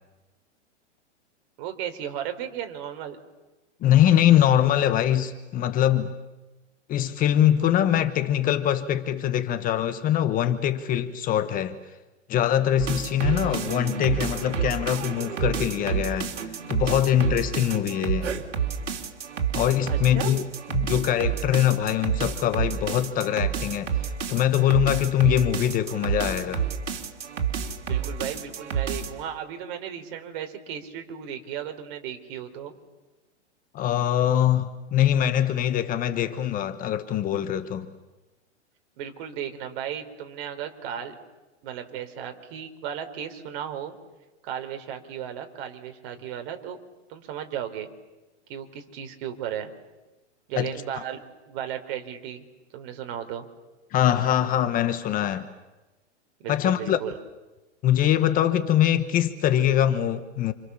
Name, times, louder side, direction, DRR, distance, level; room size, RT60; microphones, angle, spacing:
voice 1, 1.6-3.2 19.9-20.3 27.8-32.8 39.0-41.2 41.6-44.0 44.4-46.8 47.1-47.9 48.5-49.7 50.5-52.5 52.7-53.5 56.4-57.2, right 9 dB, 45° right, 3.9 m, -35 dB
voice 2, 3.8-6.1 6.9-11.8 12.3-16.3 16.7-18.3 19.5-23.9 24.3-26.6 33.7-37.9 50.6-50.7 53.9-55.5 56.5-57.0 57.8-60.5, left 11 dB, 25° left, 1.2 m, -23 dB
sound 1, 12.8-29.2, right 7 dB, 80° right, 3.4 m, -29 dB
29.0 x 28.0 x 7.1 m
hypercardioid pair, 140°, 36 cm